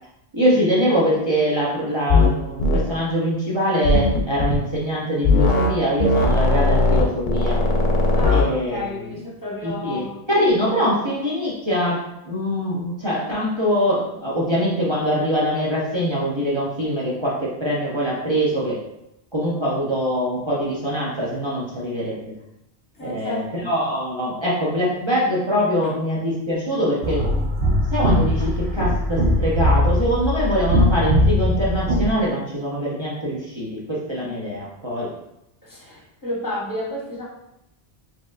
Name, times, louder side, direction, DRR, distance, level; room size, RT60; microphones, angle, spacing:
voice 1, 0.3-7.6 8.3-9.2 9.6-18.8 19.3-22.3 23.0-27.3 27.9-35.1, equal, 30° right, -6 dB, 0.7 m, -23 dB
sound 1, 2.1-2.3 2.6-2.8 3.8-4.6 5.2-5.7 6.0-8.5, left 2 dB, 55° left, 0.7 m, -18 dB
voice 2, 8.2-10.2 23.0-23.5 35.6-37.3, left 1 dB, 20° left, -5 dB, 1.0 m, -31 dB
sound 2, 27.0-32.1, equal, 75° right, 0.9 m, -20 dB
4.4 x 3.0 x 2.5 m, 0.85 s
omnidirectional pair, 1.1 m